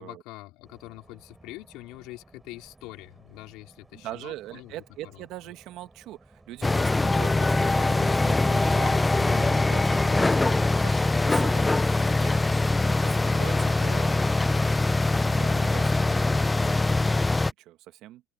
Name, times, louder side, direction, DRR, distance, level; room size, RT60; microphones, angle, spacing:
voice 1, 0.0-4.8 5.1-5.3, left 19 dB, 65° left, 3.6 m, -44 dB
sound 1, 0.6-7.4, right 2 dB, 10° right, 5.4 m, -56 dB
voice 2, 3.9-12.3 12.8-14.2 15.2-16.3 16.6-16.9 17.6-18.2, right 15 dB, 55° right, 1.6 m, -42 dB
sound 2, 6.6-17.5, left 2 dB, 10° left, 0.4 m, -23 dB
open air
cardioid pair, 135°, 0 cm